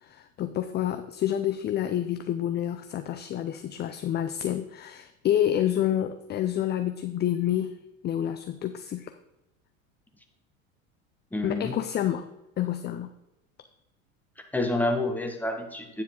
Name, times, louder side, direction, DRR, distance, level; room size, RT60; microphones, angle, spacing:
voice 1, 0.0-7.8 8.0-9.1 11.4-12.3 12.6-13.1, left 11 dB, 25° left, 9 dB, 0.5 m, -28 dB
voice 2, 11.3-11.7 14.5-16.0, left 2 dB, 5° left, 3 dB, 1.5 m, -28 dB
9.3 x 7.3 x 3.8 m, 0.92 s
hypercardioid pair, 90°, 41 cm